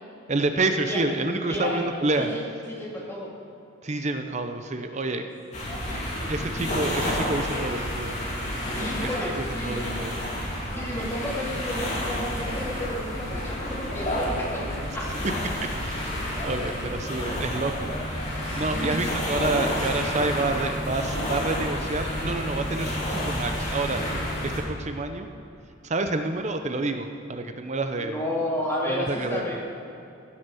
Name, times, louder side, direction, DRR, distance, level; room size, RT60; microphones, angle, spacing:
voice 1, 0.3-2.3 3.8-5.3 6.3-8.2 9.0-9.1 9.4-10.2 15.8-17.9 18.5-24.0 24.4-25.3 25.8-28.2 28.9-29.4, right 2 dB, 35° right, 7 dB, 0.6 m, -28 dB
voice 2, 1.5-3.3 5.9-6.2 8.7-9.9 10.7-15.5 18.4-19.1 27.9-29.6, left 1 dB, 10° left, -4 dB, 2.3 m, -32 dB
sound 1, 5.5-24.6, left 1 dB, 35° left, 2.6 m, -30 dB
15.5 x 7.1 x 6.3 m, 2.8 s
head